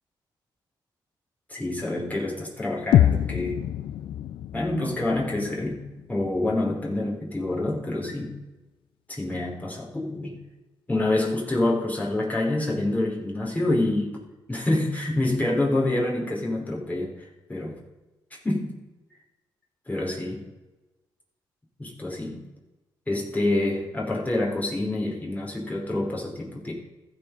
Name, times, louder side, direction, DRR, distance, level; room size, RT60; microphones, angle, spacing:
voice 1, 1.5-3.6 4.5-5.8 6.1-8.3 9.1-10.4 10.9-14.2 14.5-17.8 18.3-18.8 19.9-20.5 21.8-22.4 23.1-26.7, left 2 dB, 20° left, -3 dB, 3.9 m, -27 dB
sound 1, 2.9-6.9, left 11 dB, 80° left, 0.4 m, -26 dB
15.0 x 5.1 x 5.3 m, 1.1 s
cardioid pair, 70°, 9 cm